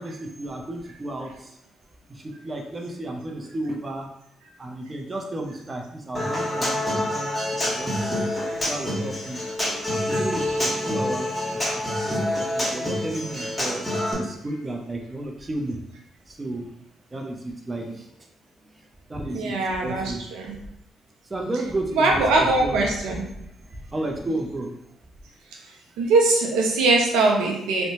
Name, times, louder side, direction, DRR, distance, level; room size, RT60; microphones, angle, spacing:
voice 1, 0.0-1.4 2.1-4.1 4.6-7.3 7.6-8.2 8.7-9.4 9.9-13.8 14.2-15.8 16.3-16.7 17.1-18.0 19.1-20.2 21.3-22.8 23.9-24.7, right 1 dB, 30° right, 2 dB, 0.5 m, -32 dB
Human voice / Acoustic guitar, 6.1-14.1, left 1 dB, 15° left, 1.3 m, -27 dB
voice 2, 19.3-20.6 21.9-23.2 26.0-27.9, right 2 dB, 80° right, 0 dB, 0.5 m, -21 dB
2.7 x 2.1 x 2.8 m, 0.77 s
supercardioid pair, 55°, 0 cm